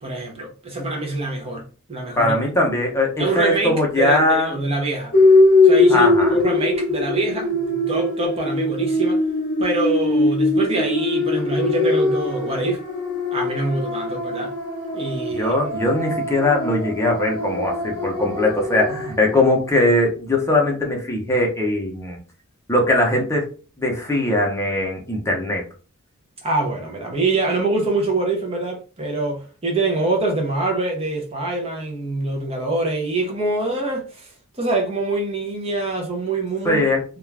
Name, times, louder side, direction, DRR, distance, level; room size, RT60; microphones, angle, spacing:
voice 1, 0.0-2.3 3.2-5.2 5.6-9.2 9.6-12.8 13.3-14.5 14.9-15.6 26.4-36.8, right 2 dB, 25° right, 0.5 m, -24 dB
voice 2, 2.2-4.5 5.9-6.4 15.4-22.2 22.7-23.5 23.8-25.6 36.6-37.0, left 1 dB, 15° left, 0.7 m, -20 dB
sound 1, 5.1-19.3, left 2 dB, 45° left, 0.9 m, -21 dB
2.4 x 2.2 x 3.2 m
head